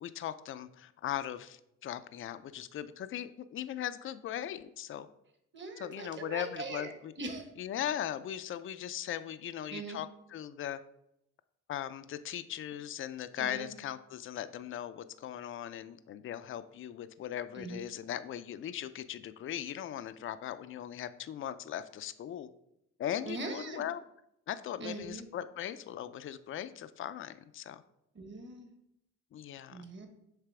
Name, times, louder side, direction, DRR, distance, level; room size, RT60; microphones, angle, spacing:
voice 1, 0.0-5.1 5.8-7.1 7.6-10.8 11.7-22.5 23.0-24.0 24.5-27.8 29.3-29.9, left 10 dB, 45° left, 13 dB, 0.4 m, -39 dB
voice 2, 5.5-6.9 7.2-7.5 9.7-10.0 13.4-13.7 17.5-17.8 23.3-23.8 24.8-25.2 28.1-28.7 29.7-30.1, right 3 dB, 40° right, 5 dB, 1.2 m, -41 dB
6.7 x 3.3 x 4.8 m, 0.80 s
cardioid pair, 90°, 30 cm